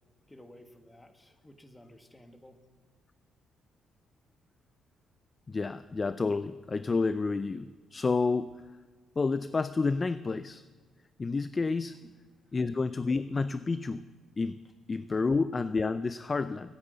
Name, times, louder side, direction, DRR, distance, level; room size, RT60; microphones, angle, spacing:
voice 1, 0.3-2.6 12.0-12.1 12.5-12.6 15.1-15.2, left 1 dB, 10° left, 6 dB, 1.5 m, -54 dB
voice 2, 5.5-8.6 9.2-10.6 11.2-12.0 12.5-14.0 14.4-14.6 14.9-16.7, left 4 dB, 30° left, 14 dB, 0.4 m, -30 dB
14.0 x 8.9 x 8.1 m, 1.4 s
cardioid pair, 90°, 0 cm